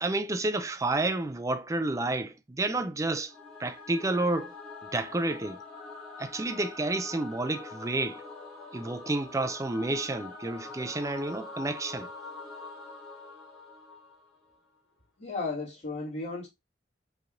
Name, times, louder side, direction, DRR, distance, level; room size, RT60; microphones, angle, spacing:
voice 1, 0.0-3.3 3.6-4.5 4.9-5.6 6.2-8.2 8.7-12.1, right 2 dB, 20° right, 0.4 m, -30 dB
Singing / Musical instrument, 3.3-14.6, left 3 dB, 5° left, 2.0 m, -45 dB
voice 2, 15.2-16.5, left 3 dB, 40° left, 2.3 m, -34 dB
5.2 x 3.3 x 2.5 m
head